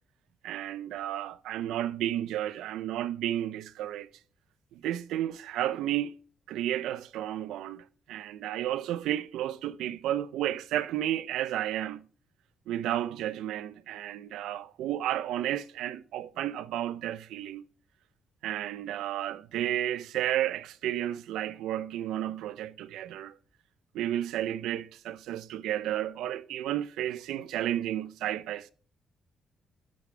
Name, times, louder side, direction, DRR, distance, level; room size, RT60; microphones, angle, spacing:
voice 1, 0.4-4.1 4.7-6.2 6.5-12.0 12.7-17.6 18.4-23.3 23.9-28.7, right 12 dB, 85° right, 0.6 m, -32 dB
10.5 x 6.7 x 3.4 m
cardioid pair, 90°, 0 cm